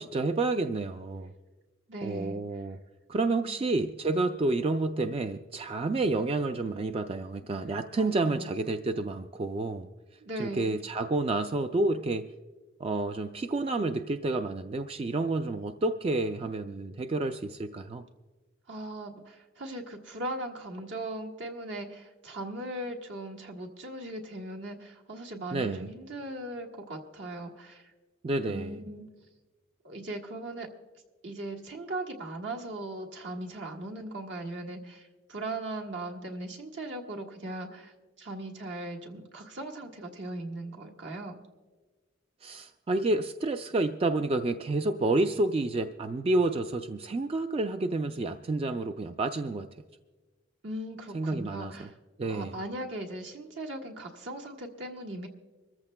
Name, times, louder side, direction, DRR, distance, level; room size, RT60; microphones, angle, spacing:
voice 1, 0.0-1.3 2.0-2.8 3.1-9.9 10.4-12.3 12.8-18.0 25.5-25.9 28.2-28.8 42.4-49.7 51.1-51.9 52.2-52.6, right 2 dB, 30° right, 8 dB, 0.3 m, -29 dB
voice 2, 1.9-2.4 3.3-3.6 8.0-8.5 10.2-10.7 18.7-27.9 28.4-29.0 29.8-30.7 31.2-37.9 38.2-41.4 50.6-51.9 52.3-55.3, right 1 dB, 70° right, 0 dB, 1.5 m, -39 dB
25.5 x 14.0 x 2.2 m, 1.3 s
head